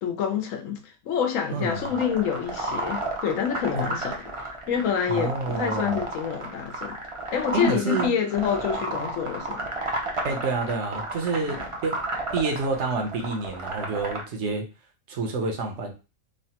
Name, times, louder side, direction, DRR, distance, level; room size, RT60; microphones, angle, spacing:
voice 1, 0.0-7.0 7.3-9.7 11.4-11.6, left 7 dB, 80° left, 1.0 m, -27 dB
voice 2, 1.5-1.9 3.8-3.9 5.1-6.0 7.5-8.1 10.2-12.0 12.3-14.6 15.1-15.9, right 3 dB, 65° right, 0.9 m, -28 dB
sound 1, 1.7-14.2, right 2 dB, 50° right, 0.4 m, -32 dB
3.1 x 2.1 x 2.8 m
omnidirectional pair, 1.4 m